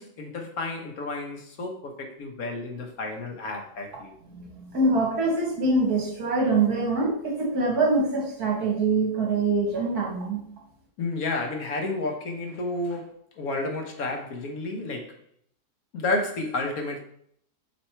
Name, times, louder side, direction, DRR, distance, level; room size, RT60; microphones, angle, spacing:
voice 1, 0.0-4.1 11.0-15.2 15.9-17.0, left 2 dB, 65° left, 1.3 m, -31 dB
voice 2, 4.3-10.4, right 3 dB, 65° right, 2.2 m, -24 dB
6.0 x 4.3 x 4.4 m
omnidirectional pair, 1.8 m